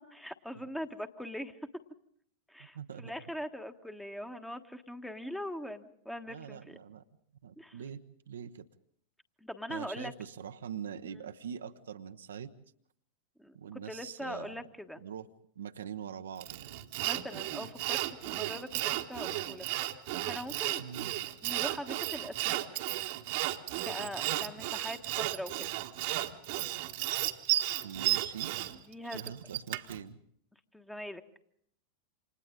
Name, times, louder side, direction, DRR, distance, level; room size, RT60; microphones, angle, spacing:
voice 1, 0.0-1.5 2.5-6.8 7.6-7.8 9.4-10.1 13.4-15.0 17.0-19.7 20.2-20.8 21.4-22.8 23.8-25.7 28.9-29.2 30.7-31.2, equal, 5° left, 8 dB, 1.4 m, -42 dB
voice 2, 2.7-3.1 6.3-7.0 7.4-8.7 9.7-12.5 13.5-14.6 15.0-15.3 15.6-16.8 20.8-21.2 24.6-24.7 27.8-28.6 29.1-30.2, right 8 dB, 65° right, 8 dB, 0.9 m, -43 dB
Sawing, 16.4-30.0, right 16 dB, 50° right, 1.3 m, -34 dB
29.0 x 26.5 x 3.8 m, 0.67 s
figure-of-eight pair, 90°, 0 cm